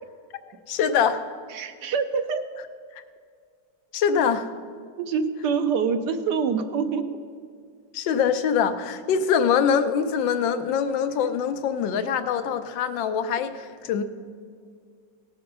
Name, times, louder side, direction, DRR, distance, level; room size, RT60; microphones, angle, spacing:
voice 1, 0.7-1.2 3.9-4.5 7.9-14.0, left 7 dB, 85° left, 9 dB, 1.4 m, -23 dB
voice 2, 1.5-2.4 5.0-7.2 11.2-11.3, right 6 dB, 70° right, 9 dB, 1.2 m, -26 dB
17.5 x 6.7 x 5.5 m, 2.1 s
omnidirectional pair, 2.0 m